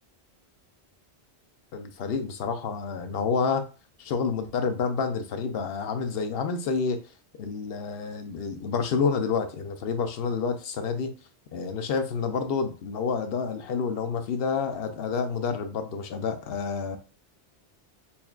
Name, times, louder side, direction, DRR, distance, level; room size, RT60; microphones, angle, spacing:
voice 1, 1.7-3.6 4.0-7.0 7.4-11.1 11.5-17.0, left 5 dB, 65° left, 7 dB, 0.7 m, -29 dB
5.6 x 2.3 x 2.3 m, 0.33 s
omnidirectional pair, 1.2 m